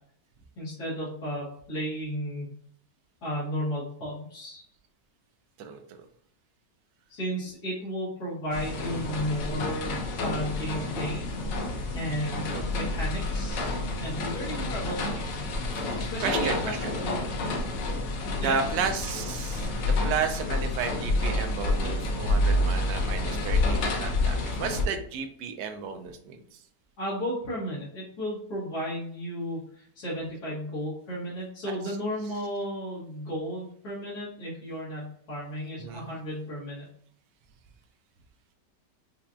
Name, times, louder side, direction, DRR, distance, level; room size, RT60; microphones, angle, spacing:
voice 1, 0.6-2.5 3.2-4.6 7.1-11.2 11.6-13.7 14.0-15.2 15.7-17.1 18.2-18.7 27.0-36.9, equal, 65° left, -10 dB, 1.8 m, -34 dB
sound 1, 8.5-24.8, left 2 dB, 85° left, 1.4 m, -29 dB
voice 2, 15.7-16.9 18.4-26.4 31.7-31.8 35.8-36.1, right 6 dB, 80° right, 6 dB, 1.2 m, -33 dB
5.5 x 2.3 x 2.4 m, 0.63 s
omnidirectional pair, 1.9 m